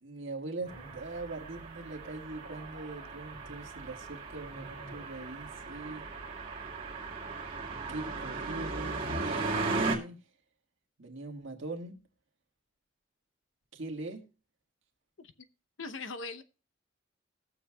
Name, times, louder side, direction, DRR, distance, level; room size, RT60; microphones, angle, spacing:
voice 1, 0.0-6.1 7.9-10.2 11.0-12.0 13.7-14.2, right 2 dB, 70° right, 1.8 m, -41 dB
sound 1, 0.6-1.2 1.5-2.0 2.3-5.6, right 1 dB, 30° left, 2.8 m, -53 dB
sound 2, 0.7-10.0, right 3 dB, 30° right, 2.2 m, -37 dB
voice 2, 15.8-16.4, left 3 dB, 75° left, 0.8 m, -40 dB
20.5 x 7.1 x 2.3 m
head